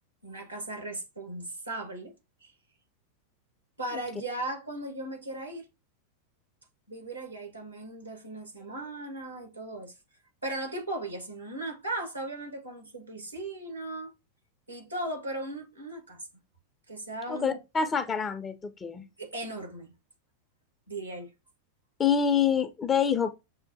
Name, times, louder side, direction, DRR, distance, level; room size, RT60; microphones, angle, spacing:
voice 1, 0.2-2.1 2.4-2.5 3.8-5.7 6.9-9.9 10.4-14.1 14.7-16.2 16.9-17.6 19.2-19.9 20.9-21.3, right 2 dB, 85° right, 1.2 m, -37 dB
voice 2, 17.3-19.0 22.0-23.3, left 7 dB, 20° left, 0.4 m, -26 dB
6.2 x 2.1 x 2.6 m
figure-of-eight pair, 90°, 0 cm